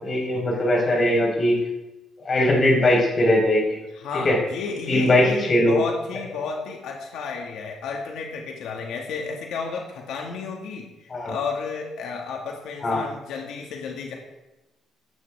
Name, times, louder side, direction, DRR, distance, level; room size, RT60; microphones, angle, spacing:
voice 1, 0.0-1.6 2.2-3.8 4.2-4.4 4.9-5.8 11.1-11.3 12.8-13.0, left 1 dB, 35° left, -1 dB, 4.8 m, -20 dB
voice 2, 3.9-14.2, left 5 dB, 85° left, 0 dB, 2.1 m, -32 dB
16.5 x 14.0 x 3.7 m, 1.0 s
cardioid pair, 125°, 0 cm